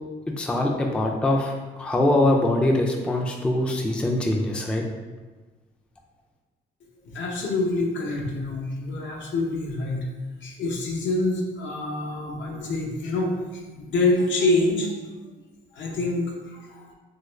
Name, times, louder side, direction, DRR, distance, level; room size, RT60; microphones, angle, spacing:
voice 1, 0.4-4.9, left 1 dB, 5° left, 0 dB, 0.3 m, -23 dB
voice 2, 7.0-10.1 10.4-15.0 15.7-16.9, left 2 dB, 70° left, -1 dB, 0.7 m, -26 dB
2.9 x 2.4 x 3.2 m, 1.3 s
cardioid pair, 90°, 20 cm